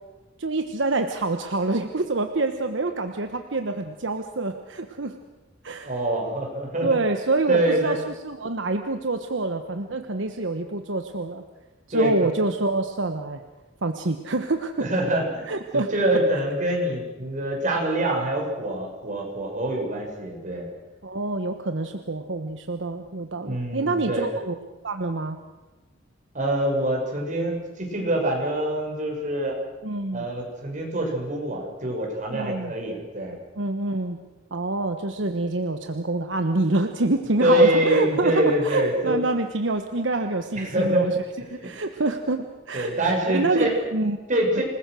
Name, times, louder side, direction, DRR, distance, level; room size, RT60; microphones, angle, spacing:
voice 1, 0.4-5.2 5.6-5.9 6.8-11.4 11.9-13.4 13.8-14.9 15.5-15.9 21.0-24.6 24.8-25.4 29.8-30.3 32.3-32.7 33.5-34.2 34.5-41.2 41.5-44.2 44.6-44.7, right 2 dB, 70° right, 6 dB, 1.2 m, -26 dB
voice 2, 5.8-6.9 7.5-7.9 11.9-12.4 14.8-20.7 23.4-24.3 26.3-29.6 30.1-33.4 37.4-39.2 40.6-41.1 41.6-41.7 42.7-43.7 44.3-44.6, right 1 dB, 40° right, 0 dB, 6.3 m, -25 dB
27.0 x 20.0 x 6.4 m, 1.1 s
head